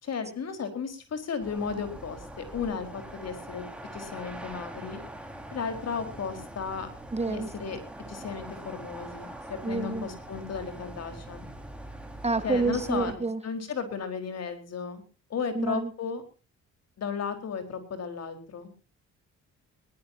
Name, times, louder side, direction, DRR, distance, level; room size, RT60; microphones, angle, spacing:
voice 1, 0.0-3.6 3.9-5.0 5.5-6.9 7.3-7.8 8.1-11.5 12.4-15.0 15.3-16.2 17.0-18.7, left 6 dB, 55° left, 9 dB, 4.6 m, -34 dB
sound 1, 1.4-13.1, right 1 dB, 5° right, 4.6 m, -43 dB
voice 2, 7.1-7.5 9.6-10.1 12.2-13.4 15.5-15.9, right 3 dB, 20° right, 12 dB, 1.6 m, -28 dB
21.0 x 18.5 x 2.8 m, 0.35 s
cardioid pair, 90°, 30 cm